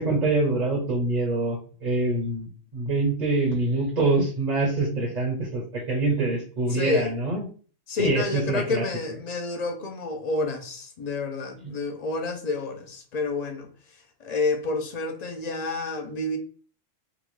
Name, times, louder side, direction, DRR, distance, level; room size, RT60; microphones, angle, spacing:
voice 1, 0.0-7.4 8.0-8.8 11.6-11.7, right 2 dB, 40° right, 0.8 m, -25 dB
voice 2, 6.7-7.1 7.9-13.7 14.2-16.4, left 3 dB, 50° left, 0.5 m, -29 dB
3.7 x 2.3 x 3.0 m
omnidirectional pair, 1.4 m